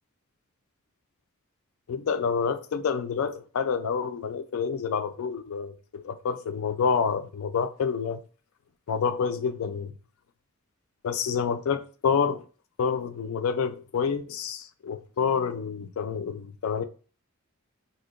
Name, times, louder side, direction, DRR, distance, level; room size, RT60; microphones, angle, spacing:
voice 1, 1.9-8.2 8.9-9.9 11.0-12.4 12.8-16.8, left 6 dB, 75° left, 0.3 m, -28 dB
2.7 x 2.1 x 3.7 m
head